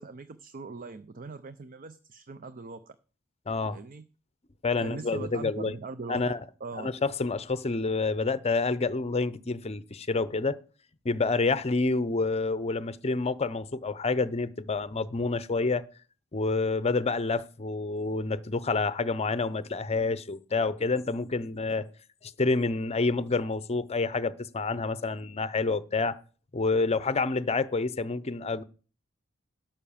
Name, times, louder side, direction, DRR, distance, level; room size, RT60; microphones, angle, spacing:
voice 1, 0.0-3.0 3.7-4.1 4.8-6.3 6.6-6.9, right 3 dB, 40° right, 0.5 m, -40 dB
voice 2, 3.5-3.8 4.6-5.7 6.1-6.4 6.8-10.6 11.0-15.8 16.3-21.9 22.2-26.2 26.5-28.6, left 3 dB, 30° left, 0.6 m, -28 dB
11.5 x 5.7 x 7.2 m
head